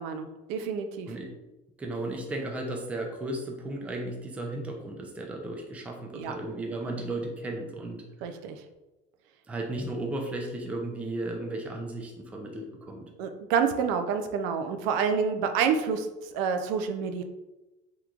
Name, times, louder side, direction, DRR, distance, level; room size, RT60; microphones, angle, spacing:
voice 1, 0.0-1.1 6.1-6.3 8.2-8.6 13.2-17.2, right 6 dB, 75° right, 7 dB, 0.4 m, -28 dB
voice 2, 1.8-8.0 9.5-13.1, right 2 dB, 10° right, 0 dB, 0.3 m, -35 dB
3.6 x 2.9 x 2.3 m, 1.0 s
cardioid pair, 165°, 18 cm